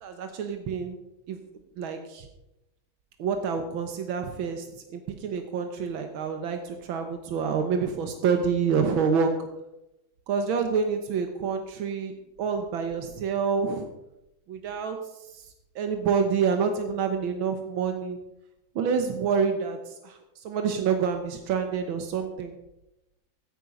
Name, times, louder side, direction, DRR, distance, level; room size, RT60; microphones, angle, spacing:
voice 1, 0.0-1.0 1.3-1.4 1.8-2.3 3.2-4.7 4.9-9.3 10.3-12.1 12.4-13.9 14.5-15.0 15.3-15.4 15.8-18.2 18.8-22.5, right 6 dB, 85° right, 6 dB, 1.9 m, -27 dB
14.5 x 9.0 x 5.2 m, 0.90 s
omnidirectional pair, 2.2 m